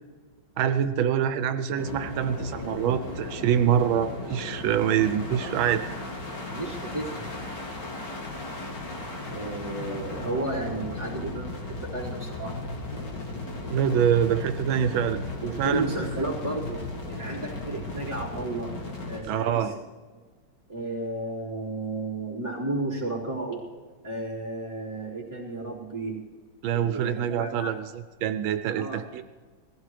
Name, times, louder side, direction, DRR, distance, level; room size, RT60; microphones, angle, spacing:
voice 1, 0.6-5.8 13.7-15.2 15.6-15.9 19.2-19.7 26.6-27.9 28.2-29.2, right 9 dB, 85° right, 10 dB, 1.4 m, -25 dB
sound 1, 1.7-19.2, left 2 dB, 60° left, 2.8 m, -36 dB
voice 2, 5.4-6.1 6.5-7.3 9.3-12.6 15.6-18.7 19.1-19.7 20.7-23.7 24.0-26.2 26.7-27.7 28.7-29.0, right 2 dB, 10° right, -7 dB, 3.7 m, -33 dB
20.5 x 15.5 x 3.3 m, 1.4 s
omnidirectional pair, 2.1 m